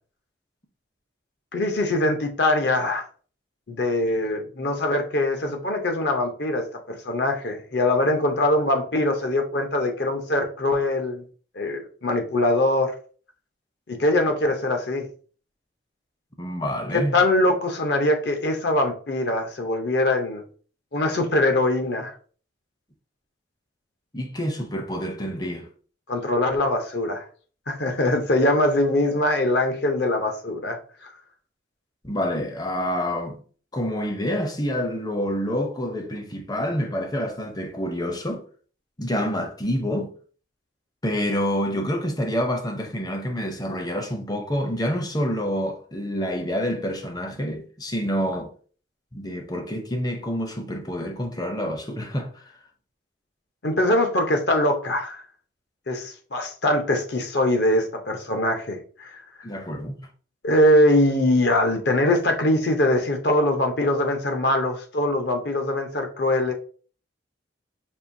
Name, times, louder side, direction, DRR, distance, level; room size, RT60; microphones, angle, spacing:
voice 1, 1.5-3.0 3.7-11.2 11.6-12.9 13.9-15.1 16.9-20.4 20.9-22.1 26.1-27.2 27.7-31.1 53.6-55.2 55.9-59.2 60.4-66.5, left 1 dB, 60° left, 0.7 m, -22 dB
voice 2, 16.4-17.1 24.1-25.7 32.0-33.4 33.7-38.4 39.0-40.1 41.0-48.5 49.1-52.4 59.4-60.0, equal, 20° left, 0.5 m, -27 dB
5.3 x 2.6 x 2.6 m
head